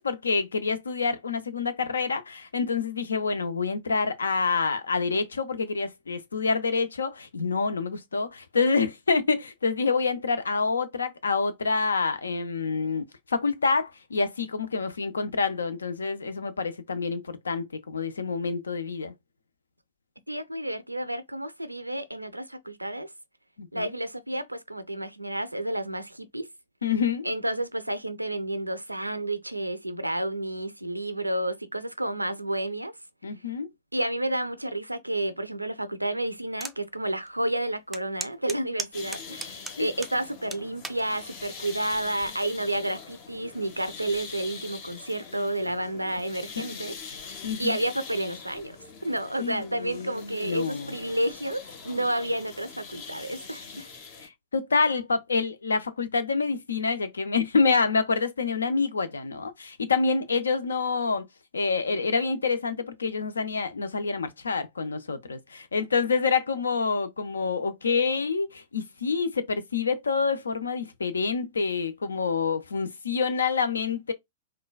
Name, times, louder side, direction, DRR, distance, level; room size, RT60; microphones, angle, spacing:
voice 1, 0.0-19.1 23.6-23.9 26.8-27.3 33.2-33.7 39.8-39.9 46.7-46.8 47.4-47.8 49.4-51.0 54.2-61.2 61.5-74.1, left 4 dB, 70° left, 0.5 m, -27 dB
voice 2, 20.3-23.1 23.7-26.5 27.2-33.0 33.9-47.0 47.6-48.8 49.0-53.9, right 1 dB, 85° right, 0.4 m, -30 dB
sound 1, 36.6-36.8 37.3-37.4 37.9-40.2 40.5-41.0 41.7-42.0, right 3 dB, 10° right, 0.4 m, -36 dB
sound 2, 38.9-54.3, left 5 dB, 45° left, 0.9 m, -43 dB
3.8 x 2.2 x 2.2 m
figure-of-eight pair, 100°, 0 cm